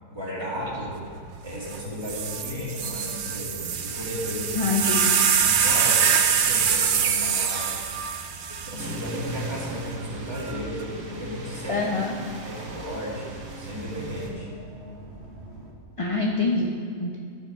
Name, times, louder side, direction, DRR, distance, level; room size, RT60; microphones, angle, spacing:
voice 1, 0.1-1.0 1.4-4.8 5.4-7.7 8.7-11.9 12.4-14.5, equal, 20° right, -6 dB, 1.9 m, -34 dB
sound 1, 0.6-15.7, right 2 dB, 50° right, 1.3 m, -44 dB
sound 2, 1.7-1.8 2.1-9.5 10.3-10.8, right 7 dB, 70° right, 0.5 m, -24 dB
voice 2, 4.6-5.1 11.7-12.2 16.0-17.2, left 3 dB, 40° left, -1 dB, 0.5 m, -26 dB
sound 3, 8.8-14.3, right 2 dB, 90° right, 1.5 m, -37 dB
11.0 x 5.8 x 4.7 m, 2.4 s
omnidirectional pair, 1.5 m